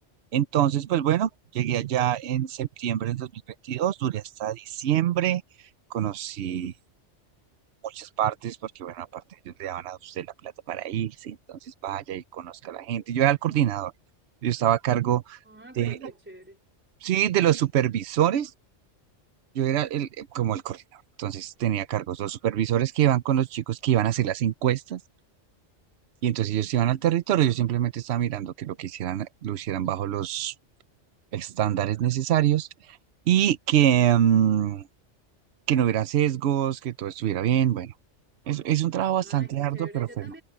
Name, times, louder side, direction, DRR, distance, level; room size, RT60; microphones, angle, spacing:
voice 1, 0.3-5.4 5.9-6.7 7.8-13.9 14.4-15.4 15.8-15.9 17.0-18.5 19.5-25.0 26.2-30.5 31.3-32.7 33.3-34.9 35.7-37.9 38.5-40.1, right 11 dB, 65° right, 0.9 m, -25 dB
voice 2, 15.4-16.6 39.2-40.4, right 1 dB, 10° right, 4.3 m, -45 dB
omnidirectional pair, 1.2 m